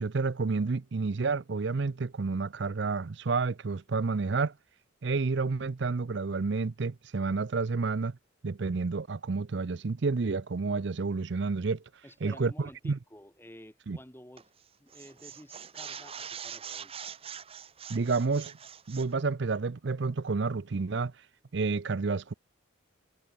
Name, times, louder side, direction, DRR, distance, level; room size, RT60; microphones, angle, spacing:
voice 1, 0.0-4.5 5.0-8.2 8.4-11.8 12.2-13.0 13.9-14.0 17.9-18.5 18.9-21.1 21.5-22.3, right 4 dB, 60° right, 0.5 m, -30 dB
voice 2, 12.0-14.4 14.8-17.1, left 1 dB, 10° left, 2.8 m, -51 dB
sound 1, 14.4-14.6 14.9-19.1, right 8 dB, 30° right, 1.0 m, -43 dB
head